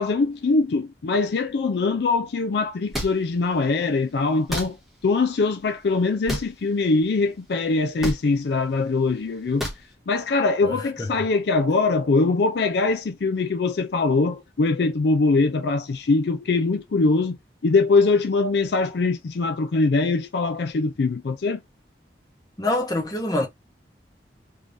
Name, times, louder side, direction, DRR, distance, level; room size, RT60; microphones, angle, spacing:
voice 1, 0.0-4.8 5.0-9.7 10.1-17.4 17.6-21.6, left 3 dB, 65° left, 0.4 m, -22 dB
sound 1, 2.9-3.1 4.5-4.7 6.3-6.5 8.0-8.2 9.6-9.8, equal, ahead, 1.1 m, -27 dB
voice 2, 10.6-11.1 22.6-23.5, left 1 dB, 20° left, 1.0 m, -25 dB
3.5 x 3.3 x 2.6 m
head